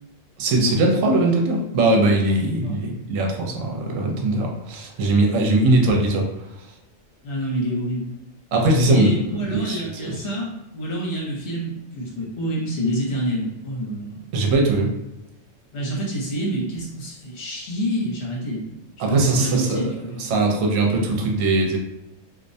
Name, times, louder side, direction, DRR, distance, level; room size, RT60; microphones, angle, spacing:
voice 1, 0.4-6.3 8.5-10.2 14.3-14.9 19.0-19.9 20.2-21.8, right 2 dB, 80° right, 0 dB, 0.9 m, -20 dB
voice 2, 7.2-8.1 8.9-14.2 15.7-18.7 19.0-20.2, right 1 dB, 65° left, -4 dB, 1.0 m, -27 dB
2.4 x 2.1 x 2.6 m, 0.92 s
omnidirectional pair, 1.3 m